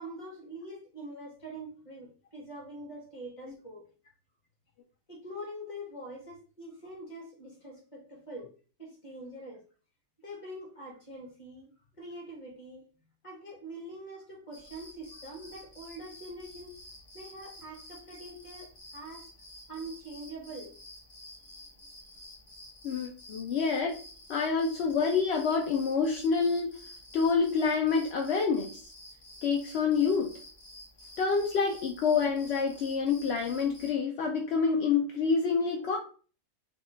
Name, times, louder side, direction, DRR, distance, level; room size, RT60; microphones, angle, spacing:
voice 1, 0.0-3.8 5.1-8.5 8.8-9.6 10.2-11.7 12.0-12.8 13.2-16.8 17.1-19.3 19.7-20.7, right 1 dB, 20° left, -3 dB, 1.4 m, -44 dB
sound 1, 14.5-33.9, left 1 dB, 45° left, 1.1 m, -51 dB
voice 2, 22.8-23.9 24.3-26.7 27.1-28.8 29.4-30.3 31.2-36.0, left 5 dB, 70° left, 1 dB, 0.6 m, -27 dB
3.6 x 2.3 x 3.8 m, 0.39 s
omnidirectional pair, 1.6 m